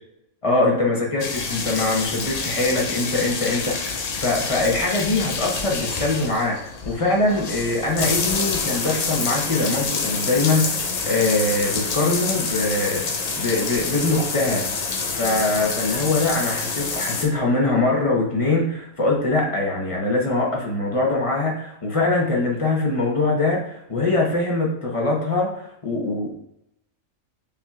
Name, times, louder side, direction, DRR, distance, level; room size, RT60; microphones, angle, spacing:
voice 1, 0.4-14.7 15.1-26.3, left 2 dB, 25° left, -2 dB, 0.9 m, -23 dB
sound 1, 1.2-17.3, left 4 dB, 65° left, 0.3 m, -27 dB
6.9 x 3.0 x 2.4 m, 0.79 s
omnidirectional pair, 1.4 m